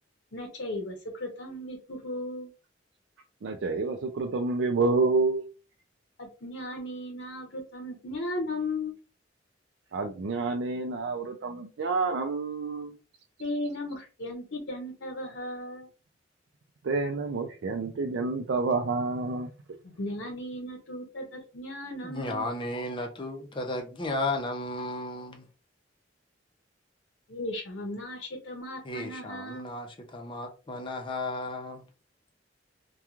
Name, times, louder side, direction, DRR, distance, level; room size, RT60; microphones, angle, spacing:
voice 1, 0.3-2.5 6.2-9.0 13.4-15.9 19.8-22.5 27.3-29.7, left 1 dB, 85° left, 0.8 m, -36 dB
voice 2, 3.4-5.4 9.9-13.0 16.8-19.5, right 3 dB, 80° right, 0.4 m, -28 dB
voice 3, 22.0-25.4 28.8-29.9 30.1-31.8, left 2 dB, 25° left, 0.6 m, -34 dB
3.0 x 2.3 x 2.3 m
head